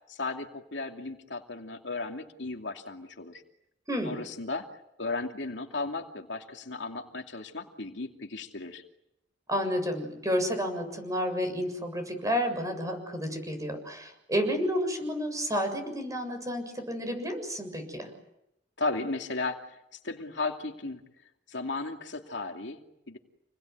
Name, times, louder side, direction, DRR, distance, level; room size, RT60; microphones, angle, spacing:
voice 1, 0.1-3.4 4.0-4.7 5.0-8.8 18.8-19.7 20.0-21.0 21.5-23.2, left 3 dB, 80° left, 3 dB, 2.6 m, -35 dB
voice 2, 3.9-4.2 9.5-18.1, equal, 20° right, 7 dB, 7.1 m, -31 dB
28.5 x 21.5 x 9.4 m, 0.84 s
head